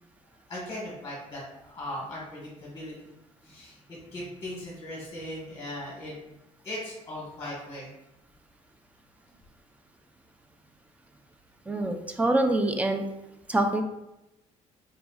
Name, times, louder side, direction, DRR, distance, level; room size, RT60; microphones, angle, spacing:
voice 1, 0.5-2.9 3.4-3.8 4.1-6.2 6.6-7.9, left 1 dB, 25° left, -5 dB, 1.4 m, -38 dB
voice 2, 11.7-13.0 13.5-13.8, right 1 dB, 10° right, 5 dB, 0.4 m, -25 dB
4.1 x 4.0 x 2.3 m, 0.91 s
cardioid pair, 135°, 13 cm